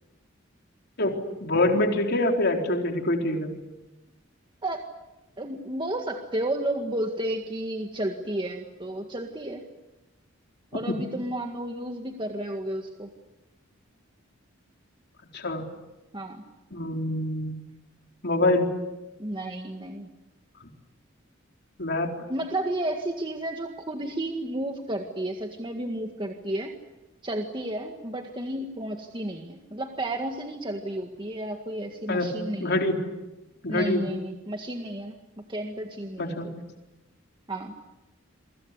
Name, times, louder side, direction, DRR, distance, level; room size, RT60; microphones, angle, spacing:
voice 1, 1.0-3.5 10.9-11.0 15.3-15.6 16.7-17.6 18.2-18.7 21.8-22.1 32.1-32.3 32.6-32.9 33.6-34.0 36.2-36.5, left 2 dB, 55° left, 2 dB, 4.1 m, -25 dB
voice 2, 5.4-9.6 10.7-13.1 16.1-16.4 19.2-20.1 22.3-26.8 27.2-32.8 33.7-35.2 35.5-36.6 37.5-37.7, right 1 dB, 25° right, 3 dB, 1.9 m, -32 dB
29.0 x 24.0 x 8.3 m, 1.0 s
head